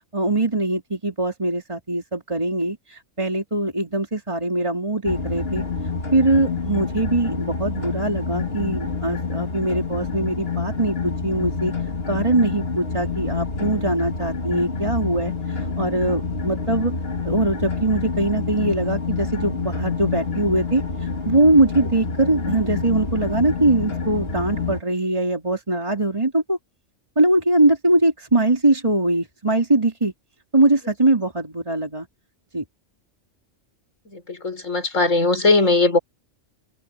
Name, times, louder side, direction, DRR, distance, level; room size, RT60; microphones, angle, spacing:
voice 1, 0.1-5.7 6.1-11.7 12.1-16.9 17.2-26.6 27.2-30.1 30.5-32.1 32.5-32.6, right 2 dB, 25° right, 3.5 m, -22 dB
sound 1, 5.1-24.8, left 4 dB, 50° left, 2.4 m, -27 dB
voice 2, 34.1-36.0, left 3 dB, 85° left, 5.4 m, -19 dB
omnidirectional pair, 1.3 m